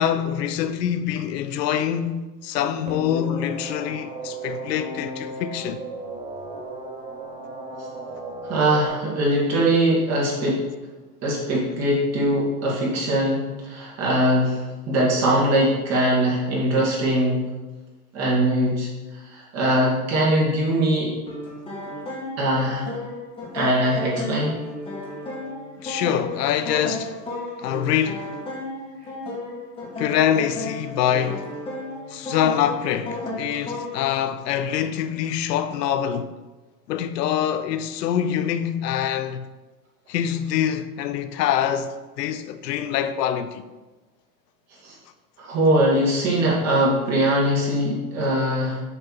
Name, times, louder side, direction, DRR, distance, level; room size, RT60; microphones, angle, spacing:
voice 1, 0.0-5.8 25.8-27.2 27.6-28.3 30.0-31.5 32.1-36.3 36.9-39.5 40.1-43.6, left 9 dB, 80° left, 0.7 m, -25 dB
sound 1, 2.9-8.9, right 2 dB, 15° right, 0.9 m, -35 dB
voice 2, 8.4-10.6 11.2-17.4 18.1-21.1 22.4-23.0 23.5-24.6 44.8-45.0 45.4-48.8, right 1 dB, 30° right, 2.0 m, -21 dB
sound 2, 21.3-34.1, left 1 dB, 10° left, 1.5 m, -34 dB
6.9 x 3.3 x 5.8 m
supercardioid pair, 140°, 48 cm